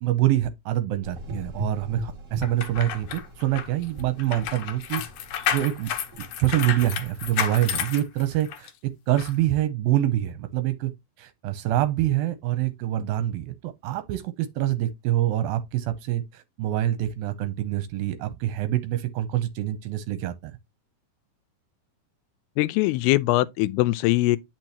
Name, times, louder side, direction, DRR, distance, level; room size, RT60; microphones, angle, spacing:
voice 1, 0.0-5.0 5.5-5.9 6.4-10.9 11.2-20.5, right 13 dB, 80° right, 2.3 m, -26 dB
Gurgling / Engine, 1.0-7.8, left 2 dB, 55° right, 0.8 m, -41 dB
sound 1, 2.4-8.7 9.2-9.3, left 9 dB, 70° left, 2.5 m, -31 dB
voice 2, 22.6-24.4, left 18 dB, 85° left, 2.6 m, -22 dB
8.9 x 6.0 x 2.9 m
omnidirectional pair, 4.5 m